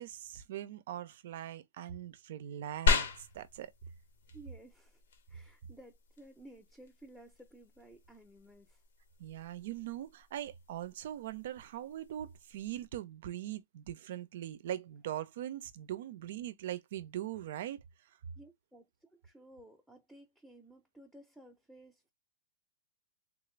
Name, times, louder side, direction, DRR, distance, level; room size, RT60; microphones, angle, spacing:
voice 1, 0.0-3.1 3.3-3.7 9.2-17.8, right 12 dB, 65° right, 0.5 m, -41 dB
sound 1, 2.9-12.9, left 3 dB, 85° left, 1.0 m, -38 dB
voice 2, 4.3-5.0 5.3-8.8 18.4-22.1, right 1 dB, ahead, 0.6 m, -56 dB
3.6 x 2.5 x 3.2 m
hypercardioid pair, 140°, 0 cm